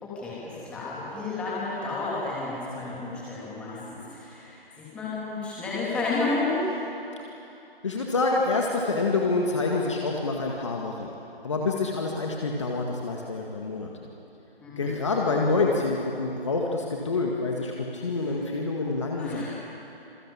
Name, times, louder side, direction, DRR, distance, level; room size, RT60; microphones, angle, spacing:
voice 1, 0.0-6.7 14.6-14.9 15.3-15.5 19.2-19.5, left 3 dB, 5° left, -8 dB, 3.0 m, -31 dB
voice 2, 7.8-11.1 11.4-13.9 14.8-19.5, left 3 dB, 30° left, -1 dB, 2.0 m, -27 dB
27.0 x 21.5 x 8.6 m, 2.9 s
figure-of-eight pair, 170°, 30 cm